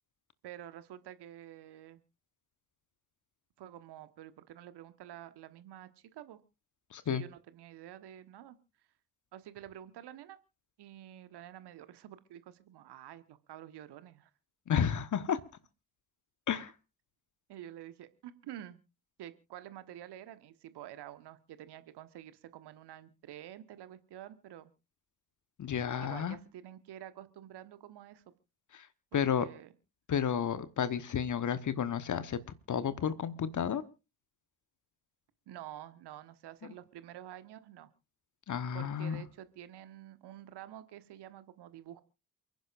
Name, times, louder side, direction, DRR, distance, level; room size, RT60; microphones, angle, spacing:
voice 1, 0.4-2.0 3.6-6.4 7.1-8.6 9.3-10.4 10.8-14.3 16.5-16.6 17.5-18.8 19.2-24.7 26.0-28.3 29.3-29.7 35.5-37.9 38.7-42.0, right 12 dB, 50° right, 12 dB, 1.4 m, -49 dB
voice 2, 6.9-7.2 14.7-15.4 16.5-16.7 25.6-26.4 28.7-28.9 29.1-29.5 30.1-32.4 32.7-33.8 38.5-39.2, left 8 dB, 35° left, 13 dB, 1.2 m, -31 dB
28.5 x 10.5 x 2.5 m, 0.31 s
figure-of-eight pair, 40°, 49 cm